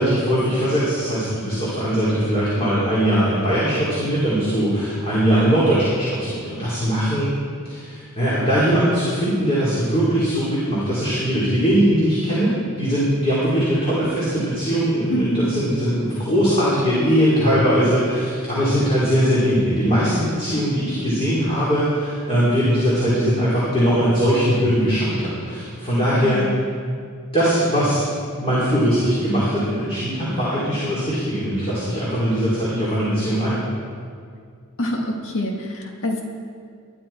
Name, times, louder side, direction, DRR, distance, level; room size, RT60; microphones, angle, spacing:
voice 1, 0.0-7.3 7.6-26.4 27.3-28.0 28.4-33.6, equal, 25° left, -9 dB, 4.4 m, -20 dB
voice 2, 15.1-15.4 26.2-26.6 34.8-36.2, left 1 dB, 60° left, 1 dB, 2.0 m, -25 dB
22.0 x 11.5 x 4.6 m, 2.2 s
head